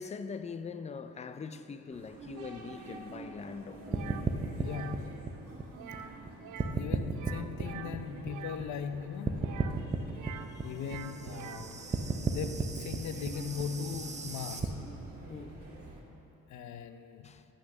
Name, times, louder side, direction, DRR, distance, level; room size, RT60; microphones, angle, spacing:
voice 1, 0.0-4.2 15.3-15.6 17.2-17.4, left 5 dB, 25° left, 0.4 m, -42 dB
sound 1, 1.9-16.0, right 3 dB, 50° right, 2.0 m, -49 dB
sound 2, 3.9-6.3 6.6-9.0 9.2-14.7, right 4 dB, 25° right, 0.7 m, -34 dB
sound 3, 3.9-4.2 4.6-5.0 5.7-6.1 6.4-6.8 7.1-8.6 9.4-10.5 10.8-11.7, right 10 dB, 75° right, 0.5 m, -46 dB
voice 2, 4.5-5.4 6.7-9.5 9.8-11.9 12.2-14.8 16.5-17.3, left 7 dB, 70° left, 0.6 m, -40 dB
8.4 x 6.0 x 7.1 m
cardioid pair, 90°, 30 cm